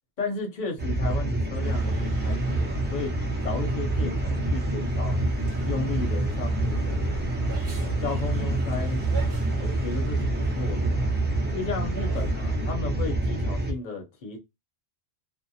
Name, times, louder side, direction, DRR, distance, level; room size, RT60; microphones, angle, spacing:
voice 1, 0.2-5.2 5.6-7.3 7.8-9.1 9.6-11.1 11.5-14.4, left 3 dB, 40° left, 0.9 m, -34 dB
sound 1, 0.8-13.7, right 2 dB, 15° right, 0.3 m, -27 dB
sound 2, 1.6-12.7, right 2 dB, 45° right, 1.0 m, -39 dB
2.5 x 2.1 x 2.6 m
omnidirectional pair, 1.4 m